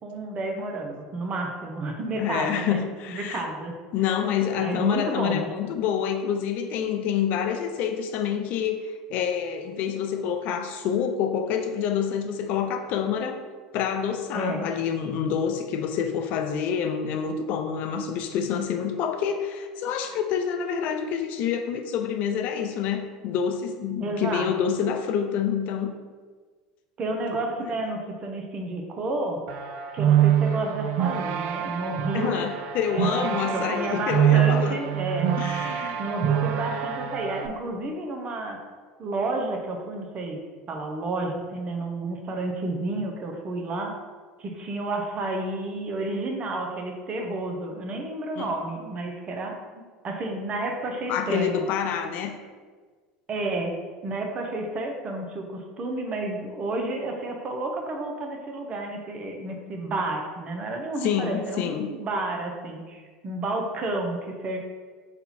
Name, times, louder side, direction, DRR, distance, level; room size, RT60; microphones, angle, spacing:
voice 1, 0.0-2.8 3.1-3.7 4.6-5.5 14.3-14.7 24.0-24.7 27.0-29.4 29.9-32.4 32.9-35.3 36.0-38.6 39.0-40.4 40.7-44.0 44.4-51.7 53.3-53.8 54.0-64.6, right 2 dB, 40° right, 2 dB, 0.8 m, -31 dB
voice 2, 2.2-3.4 3.9-13.4 13.7-25.9 32.1-34.8 35.4-36.0 48.4-48.5 51.1-52.4 61.0-61.9, left 8 dB, 55° left, 6 dB, 0.4 m, -27 dB
sound 1, 29.5-37.5, right 10 dB, 60° right, 0.4 m, -25 dB
4.2 x 2.7 x 4.2 m, 1.5 s
hypercardioid pair, 80°, 3 cm